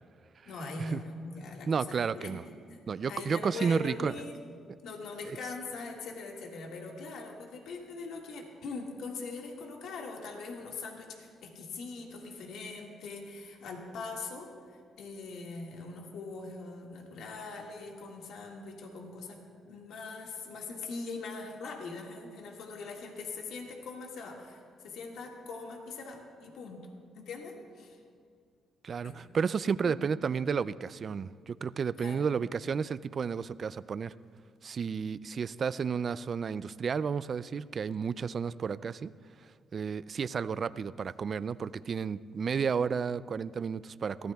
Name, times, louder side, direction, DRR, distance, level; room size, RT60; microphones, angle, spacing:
voice 1, 0.5-2.4 2.7-2.8 3.1-4.4 4.8-26.9 27.1-28.0 29.0-29.2 29.8-30.0 32.0-32.3, left 3 dB, 80° left, 0 dB, 1.8 m, -42 dB
voice 2, 1.7-2.4 2.9-4.1 5.3-5.4 28.8-34.1 34.6-39.1 39.7-44.3, right 6 dB, 45° right, 17 dB, 0.3 m, -32 dB
23.5 x 16.0 x 2.3 m, 2.2 s
cardioid pair, 90°, 0 cm